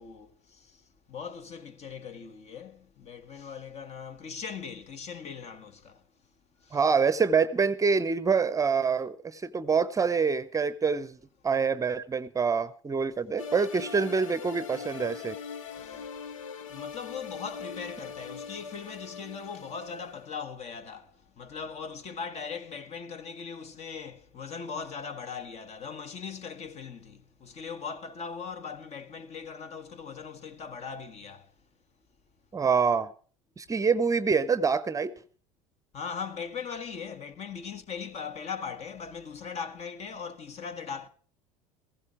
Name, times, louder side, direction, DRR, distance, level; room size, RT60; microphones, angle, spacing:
voice 1, 0.0-6.0 6.6-6.8 15.8-16.1 16.7-31.6 32.6-32.7 35.9-41.1, left 6 dB, 40° left, 1.5 m, -40 dB
voice 2, 6.7-11.2 11.4-15.4 32.5-33.1 33.6-35.1, right 5 dB, 20° right, 0.8 m, -26 dB
sound 1, 13.4-20.3, left 6 dB, 85° left, 0.9 m, -41 dB
15.5 x 15.5 x 4.8 m
hypercardioid pair, 75°, 17 cm